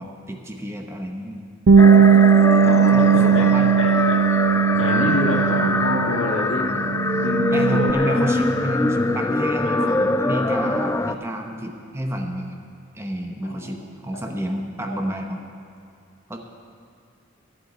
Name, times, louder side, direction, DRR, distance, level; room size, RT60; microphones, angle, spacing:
voice 1, 0.0-1.5 2.0-2.2 2.5-3.8 7.5-12.6 12.9-15.4 16.3-16.4, equal, 15° right, 2 dB, 0.9 m, -30 dB
Bass guitar, 1.7-6.4 6.7-7.9, right 7 dB, 70° right, 0.5 m, -17 dB
sound 1, 1.8-11.1, left 2 dB, 15° left, 0.3 m, -23 dB
voice 2, 2.6-4.2 4.8-6.7 7.2-7.4 7.7-8.3 9.7-10.1 13.4-13.8 14.1-14.2 14.9-15.0, left 2 dB, 65° left, -1 dB, 2.1 m, -27 dB
11.5 x 8.0 x 9.1 m, 2.5 s
head